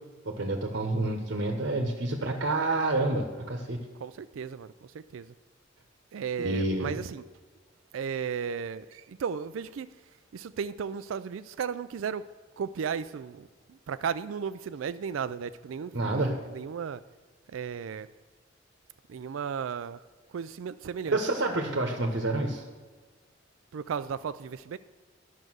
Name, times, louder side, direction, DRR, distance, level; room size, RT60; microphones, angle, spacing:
voice 1, 0.2-3.8 6.4-6.9 15.9-16.3 21.1-22.6, right 2 dB, 60° right, 3 dB, 1.1 m, -28 dB
voice 2, 4.0-5.3 6.1-7.2 7.9-9.9 10.3-12.2 12.6-17.0 17.5-18.1 19.1-20.0 20.3-21.2 23.7-24.8, right 7 dB, 80° right, 13 dB, 0.4 m, -35 dB
10.5 x 6.6 x 6.2 m, 1.4 s
head